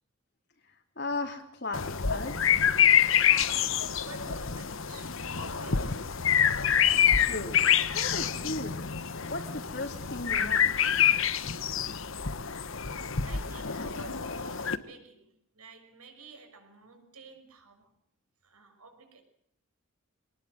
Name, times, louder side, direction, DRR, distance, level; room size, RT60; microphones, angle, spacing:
voice 1, 1.0-2.6 7.2-7.6 7.9-8.9 9.2-10.7, left 2 dB, 50° left, 3.1 m, -36 dB
sound 1, 1.7-14.8, left 8 dB, 65° left, 1.2 m, -26 dB
voice 2, 3.2-6.1 12.3-18.0 18.4-19.2, right 3 dB, 90° right, 6.1 m, -50 dB
23.5 x 19.5 x 7.9 m
head